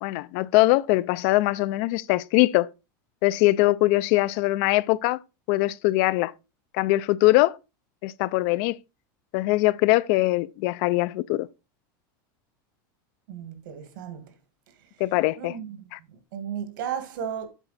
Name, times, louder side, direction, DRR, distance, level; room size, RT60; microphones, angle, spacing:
voice 1, 0.0-2.7 3.2-5.2 5.5-6.3 6.7-7.6 8.0-8.8 9.3-11.5 15.0-15.6 15.9-16.0, left 19 dB, 45° left, 0.3 m, -22 dB
voice 2, 13.3-14.2 15.4-15.7 16.3-17.5, right 8 dB, 70° right, 1.9 m, -34 dB
8.1 x 5.8 x 4.1 m
supercardioid pair, 170°, 11 cm